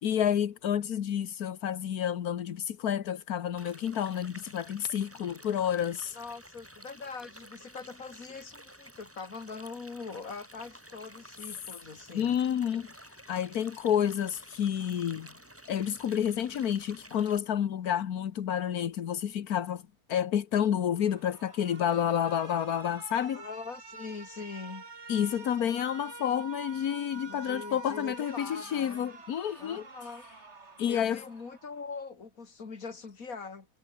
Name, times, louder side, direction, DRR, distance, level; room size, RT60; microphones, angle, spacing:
voice 1, 0.0-6.2 12.1-15.3 15.7-19.8 20.1-23.4 25.1-30.1 30.8-31.2, left 9 dB, 85° left, 1.6 m, -30 dB
sound 1, 3.6-17.4, equal, 10° right, 4.2 m, -52 dB
voice 2, 6.1-12.4 23.3-24.9 27.3-29.1 29.6-30.2 30.9-33.7, left 4 dB, 70° left, 3.0 m, -42 dB
Alarm, 21.0-32.0, right 4 dB, 50° right, 2.5 m, -47 dB
omnidirectional pair, 1.5 m